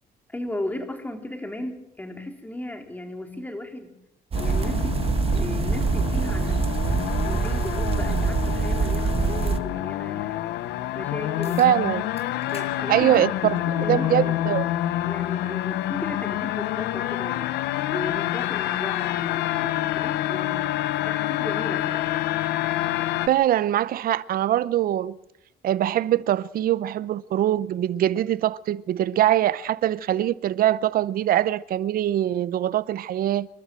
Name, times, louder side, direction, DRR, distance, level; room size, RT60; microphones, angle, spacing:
voice 1, 0.3-3.9 4.4-6.6 7.2-10.5 10.9-11.6 12.5-13.5 13.8-14.4 15.0-17.5 17.9-22.1, left 1 dB, 10° left, 3.9 m, -36 dB
sound 1, 4.3-23.3, left 14 dB, 85° left, 0.9 m, -27 dB
sound 2, 4.3-9.6, right 5 dB, 35° right, 1.7 m, -24 dB
sound 3, 11.4-11.7 12.2-12.7 13.1-13.3 14.4-14.5 19.4-19.5, left 5 dB, 35° left, 5.8 m, -45 dB
voice 2, 11.6-12.1 12.9-14.6 23.3-25.2 25.6-33.5, right 12 dB, 60° right, 0.8 m, -23 dB
28.0 x 12.5 x 7.7 m
cardioid pair, 110°, 17 cm